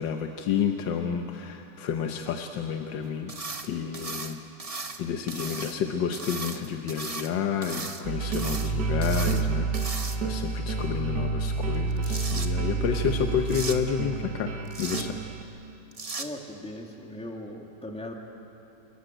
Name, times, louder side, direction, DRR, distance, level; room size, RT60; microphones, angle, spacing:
voice 1, 0.0-3.4 3.6-4.4 5.0-15.2, left 7 dB, 90° left, 5 dB, 1.6 m, -30 dB
sound 1, 3.3-3.7 3.9-5.0 5.3-5.8 6.1-7.3 7.6-8.0 8.3-8.7 9.0-9.4 9.7-10.4 11.7-12.5 13.5-13.8 14.7-15.1 15.9-16.3, right 3 dB, 25° right, 0.9 m, -36 dB
sound 2, 8.0-15.4, right 4 dB, 70° right, 1.9 m, -29 dB
voice 2, 16.2-18.1, left 1 dB, 5° left, 1 dB, 1.8 m, -39 dB
29.0 x 14.0 x 9.1 m, 2.9 s
omnidirectional pair, 1.9 m